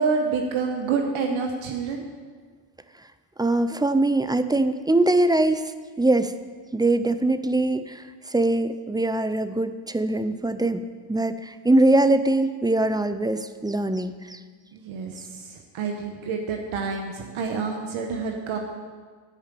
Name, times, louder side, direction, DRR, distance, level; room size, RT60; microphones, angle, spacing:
voice 1, 0.0-2.1 14.7-18.6, right 5 dB, 75° right, 3 dB, 1.2 m, -28 dB
voice 2, 3.4-5.7 6.0-6.3 6.7-10.8 11.1-14.4, right 2 dB, 10° right, 11 dB, 0.4 m, -22 dB
10.5 x 5.0 x 7.5 m, 1.6 s
supercardioid pair, 70°, 49 cm